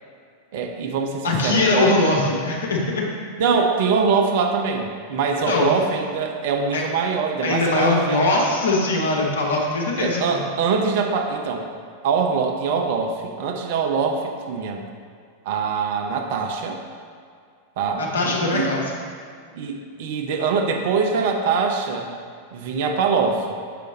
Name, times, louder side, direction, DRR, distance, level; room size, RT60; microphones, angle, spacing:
voice 1, 0.5-1.9 3.4-8.3 10.0-11.7 12.0-14.8 15.4-16.8 17.8-18.0 18.5-18.7 19.5-22.1 22.5-23.6, right 5 dB, 50° right, 3 dB, 0.7 m, -23 dB
voice 2, 1.2-3.1 5.5-5.8 6.7-6.8 7.4-10.4 18.0-18.8, left 2 dB, 65° left, -2 dB, 1.2 m, -21 dB
6.7 x 5.1 x 4.0 m, 2.1 s
figure-of-eight pair, 90°, 0 cm